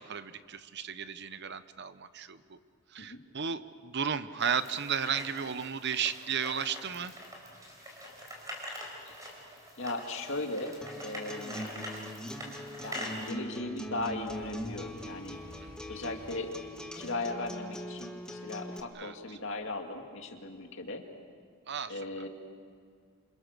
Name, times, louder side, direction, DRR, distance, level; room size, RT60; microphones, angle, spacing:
voice 1, 0.0-2.6 2.9-7.1 11.6-11.7 15.6-15.7 18.9-19.4 21.7-22.0, right 7 dB, 50° right, 13 dB, 0.8 m, -34 dB
sound 1, 4.4-13.3, equal, 15° right, 4.5 m, -44 dB
voice 2, 9.8-10.8 11.0-11.8 12.8-15.4 15.9-16.5 17.0-21.0 21.9-22.3, left 2 dB, 55° left, 3 dB, 2.3 m, -37 dB
Acoustic guitar, 10.8-18.8, equal, 5° left, 1.5 m, -42 dB
sound 2, 12.8-19.9 20.3-20.7, left 1 dB, 35° left, 2.9 m, -56 dB
27.5 x 27.0 x 6.7 m, 2.1 s
head